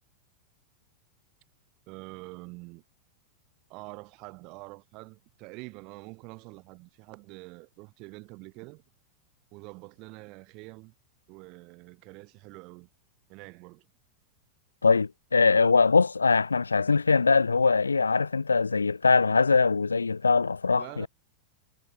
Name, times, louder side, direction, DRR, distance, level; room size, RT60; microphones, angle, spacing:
voice 1, 1.9-2.8 3.7-8.8 9.5-10.9 11.3-12.9 13.3-13.8 20.8-21.1, right 26 dB, 40° right, 1.6 m, -46 dB
voice 2, 14.8-21.1, left 4 dB, 75° left, 0.3 m, -22 dB
figure-of-eight pair, 90°, 0 cm